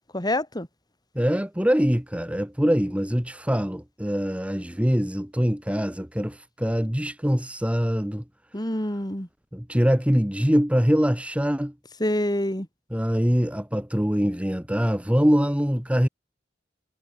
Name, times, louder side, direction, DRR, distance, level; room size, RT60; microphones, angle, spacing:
voice 1, 0.1-0.7 8.5-9.3 12.0-12.7, left 1 dB, 25° left, 5.0 m, -26 dB
voice 2, 1.2-8.2 9.5-11.7 12.9-16.1, equal, 5° right, 1.9 m, -23 dB
head